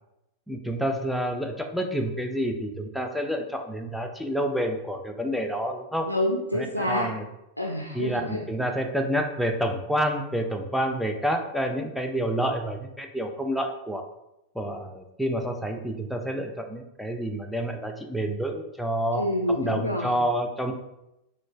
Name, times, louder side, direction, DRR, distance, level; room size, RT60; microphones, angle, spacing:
voice 1, 0.5-6.1 6.5-7.2 7.9-14.0 14.6-19.3 19.6-20.7, equal, ahead, 4 dB, 0.4 m, -28 dB
voice 2, 6.1-7.1 7.6-8.4 19.1-20.2, left 1 dB, 90° left, 0 dB, 0.4 m, -27 dB
6.0 x 2.2 x 2.2 m, 0.89 s
figure-of-eight pair, 90°, 0 cm